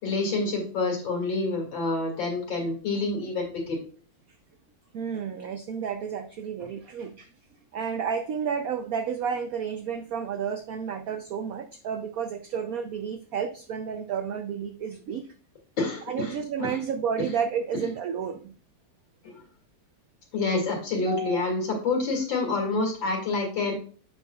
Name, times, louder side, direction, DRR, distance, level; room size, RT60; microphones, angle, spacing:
voice 1, 0.0-3.8 15.8-16.3 16.6-16.8 19.2-19.3 20.3-23.7, left 3 dB, 70° left, 1 dB, 2.8 m, -27 dB
voice 2, 4.9-7.3 7.7-15.3 16.1-18.5 21.0-21.5, right 7 dB, 85° right, 8 dB, 0.7 m, -31 dB
8.4 x 5.7 x 2.3 m, 0.41 s
omnidirectional pair, 2.2 m